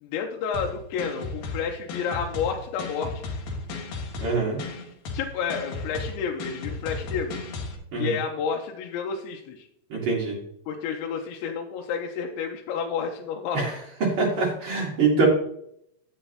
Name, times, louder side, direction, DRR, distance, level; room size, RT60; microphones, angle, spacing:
voice 1, 0.0-3.2 5.1-7.4 8.0-9.7 10.7-13.7, left 6 dB, 90° left, 1 dB, 3.1 m, -30 dB
sound 1, 0.5-7.7, left 3 dB, 65° left, 2.3 m, -35 dB
voice 2, 4.2-4.6 7.9-8.1 9.9-10.4 13.5-13.7 14.2-15.3, right 4 dB, 65° right, -4 dB, 1.3 m, -24 dB
10.5 x 8.8 x 2.9 m, 0.72 s
omnidirectional pair, 5.3 m